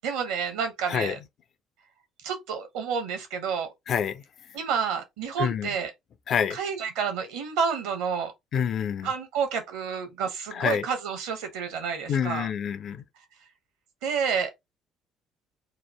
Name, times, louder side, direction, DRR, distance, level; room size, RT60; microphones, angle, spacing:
voice 1, 0.0-1.2 2.2-3.7 4.5-5.9 6.5-8.3 9.0-12.5 14.0-14.5, right 6 dB, 65° right, 0.8 m, -29 dB
voice 2, 3.9-4.2 5.4-5.7 6.3-6.6 8.5-9.1 10.5-10.9 12.1-13.0, left 8 dB, 45° left, 0.4 m, -27 dB
2.9 x 2.3 x 3.2 m
figure-of-eight pair, 50°, 0 cm